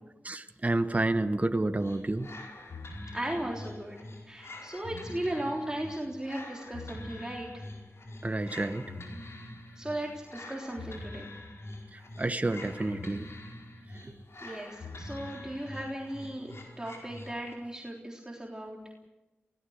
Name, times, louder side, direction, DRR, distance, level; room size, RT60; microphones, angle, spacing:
voice 1, 0.2-2.3 8.2-8.8 12.2-13.3 14.0-14.1, right 2 dB, 35° right, 8 dB, 1.4 m, -29 dB
sound 1, 1.8-17.7, left 2 dB, 75° left, 4.9 m, -45 dB
voice 2, 3.1-4.0 4.3-7.5 9.8-11.3 14.4-18.8, right 1 dB, 15° right, -2 dB, 3.6 m, -36 dB
24.0 x 18.0 x 6.6 m, 1.1 s
cardioid pair, 40°, 5 cm